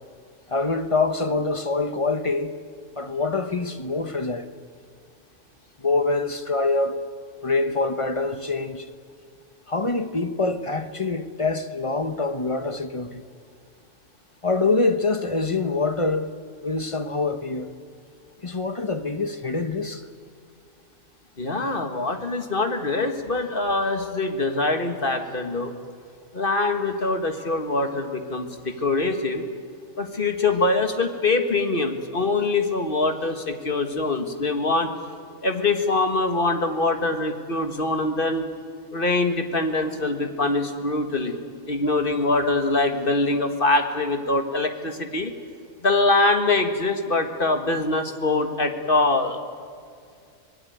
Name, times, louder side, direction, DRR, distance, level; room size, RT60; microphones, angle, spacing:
voice 1, 0.5-2.5 3.0-4.4 5.8-7.0 7.4-8.9 9.7-13.2 14.4-16.3 16.6-17.7 18.4-20.0, left 3 dB, 25° left, 0.9 m, -25 dB
voice 2, 21.4-25.7 26.3-29.5 30.0-34.9 35.4-38.5 38.9-41.4 41.7-45.3 45.8-49.4, left 2 dB, 40° left, 1.9 m, -23 dB
25.0 x 19.5 x 9.3 m
omnidirectional pair, 1.4 m